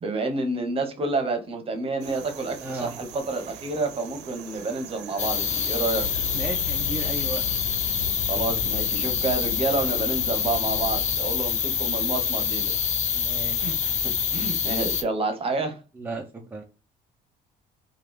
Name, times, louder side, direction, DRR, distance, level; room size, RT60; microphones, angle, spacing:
voice 1, 0.0-6.1 8.3-12.7 13.6-15.8, right 3 dB, 35° right, 0.9 m, -29 dB
sound 1, 2.0-9.5, right 8 dB, 85° right, 0.6 m, -44 dB
voice 2, 2.6-3.0 6.3-7.4 13.1-13.6 16.0-16.6, right 3 dB, 10° right, 0.5 m, -34 dB
sound 2, 5.2-15.0, left 7 dB, 45° left, 0.5 m, -26 dB
sound 3, 5.9-11.2, left 4 dB, 80° left, 0.9 m, -37 dB
3.3 x 2.4 x 3.1 m
cardioid pair, 110°, 17 cm